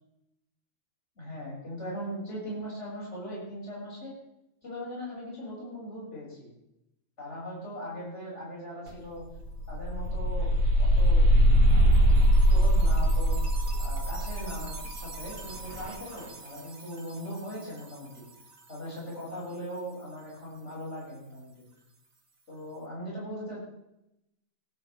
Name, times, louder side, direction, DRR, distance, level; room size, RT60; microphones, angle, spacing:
voice 1, 1.2-4.1 4.6-6.5 7.2-9.2 9.7-10.5 10.8-11.3 11.7-12.1 12.5-13.4 13.8-18.3 18.7-21.7 22.5-23.6, equal, 55° left, -6 dB, 7.2 m, -39 dB
sound 1, 8.9-9.0 9.3-16.1, equal, 80° right, 2.4 m, -23 dB
19.0 x 13.0 x 3.5 m, 0.85 s
omnidirectional pair, 1.4 m